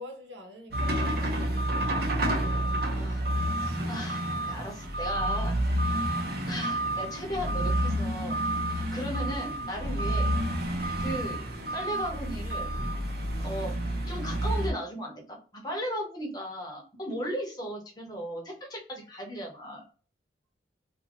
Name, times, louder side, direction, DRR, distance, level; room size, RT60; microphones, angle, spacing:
voice 1, 0.0-2.3, left 2 dB, 80° right, 1.0 m, -46 dB
sound 1, 0.7-14.7, right 1 dB, 60° right, 0.7 m, -29 dB
voice 2, 3.9-5.6 5.8-8.4 8.7-10.3 11.0-11.4 11.7-12.7 13.4-13.7 14.1-19.9, equal, 20° left, 0.9 m, -36 dB
2.6 x 2.4 x 2.9 m
head